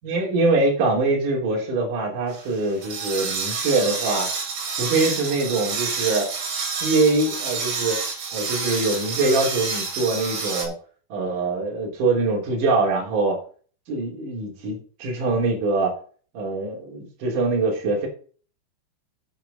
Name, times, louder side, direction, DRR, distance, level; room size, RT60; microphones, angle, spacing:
voice 1, 0.0-4.3 4.8-6.3 6.8-8.0 8.3-10.7 11.1-13.4 13.9-15.9 16.3-18.1, right 3 dB, 45° right, -2 dB, 4.4 m, -23 dB
sound 1, 2.3-10.7, right 4 dB, 70° right, 5.4 m, -29 dB
10.5 x 6.2 x 5.6 m, 0.42 s
omnidirectional pair, 5.3 m